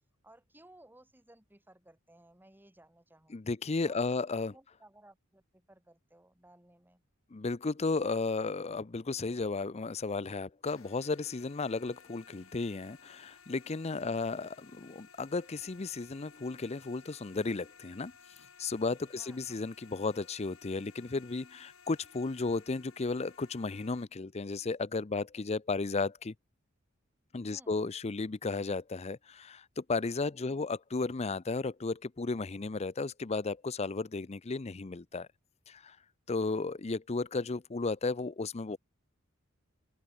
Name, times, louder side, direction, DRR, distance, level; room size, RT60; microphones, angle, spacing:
voice 1, 0.2-3.5 3.8-7.0 19.1-19.6 27.5-27.8 30.4-30.7, right 1 dB, 10° right, 2.2 m, -60 dB
voice 2, 3.3-4.5 7.3-18.1 18.6-26.3 27.3-35.3 35.7-36.0 36.3-38.8, left 3 dB, 30° left, 0.5 m, -34 dB
sound 1, 10.7-24.0, left 6 dB, 85° left, 4.2 m, -58 dB
open air
head